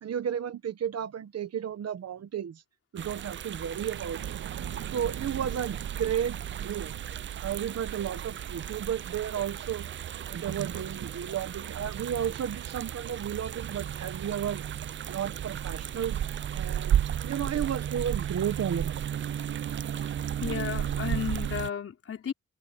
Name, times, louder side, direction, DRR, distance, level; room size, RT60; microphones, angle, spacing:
voice 1, 0.0-2.6 2.9-4.3 4.9-6.9 7.4-9.9 10.3-14.6 15.1-16.2 16.5-19.0, right 9 dB, 60° right, 1.3 m, -33 dB
sound 1, 3.0-21.7, right 10 dB, 40° right, 0.4 m, -34 dB
sound 2, 3.6-11.2, right 10 dB, 85° right, 1.8 m, -41 dB
voice 2, 19.9-22.3, left 8 dB, 50° left, 4.2 m, -34 dB
wide cardioid pair, 135°, 29 cm